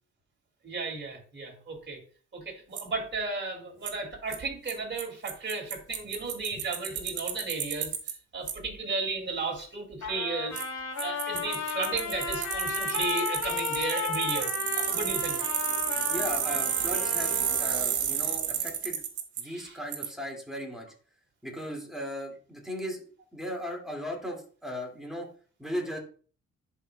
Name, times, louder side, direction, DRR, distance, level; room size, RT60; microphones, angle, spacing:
voice 1, 0.6-2.0 2.3-7.9 8.3-10.6 11.0-15.6 19.4-19.8, right 3 dB, 40° right, 2 dB, 2.4 m, -34 dB
Bicycle, 2.8-2.9 3.9-4.0 4.3-4.4 4.7-4.8 5.0-5.1 5.3-8.1 8.5-8.6 10.6-10.7 11.0-19.4 19.9-20.1, right 9 dB, 75° right, 1.4 m, -30 dB
Trumpet, 10.0-17.8, left 5 dB, 65° left, 2.7 m, -34 dB
voice 2, 16.1-19.0 19.4-20.9 21.4-23.0 23.3-25.3 25.6-26.0, equal, ahead, 0 dB, 2.2 m, -37 dB
10.5 x 4.6 x 2.2 m, 0.40 s
cardioid pair, 90°, 30 cm